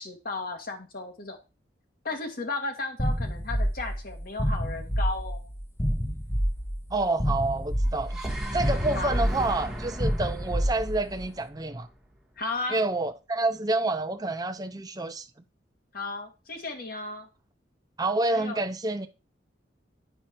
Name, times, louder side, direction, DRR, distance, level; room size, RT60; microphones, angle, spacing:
voice 1, 0.0-1.4 2.1-5.5 9.0-9.2 12.4-12.8 15.9-17.3 18.3-18.6, left 3 dB, 55° left, 1.7 m, -34 dB
sound 1, 3.0-11.3, equal, 15° left, 0.8 m, -28 dB
voice 2, 6.9-8.2 8.5-11.9 12.7-15.3 18.0-19.1, right 2 dB, 20° right, 0.6 m, -28 dB
sound 2, 7.9-12.0, right 1 dB, ahead, 1.5 m, -36 dB
9.1 x 4.6 x 4.4 m
head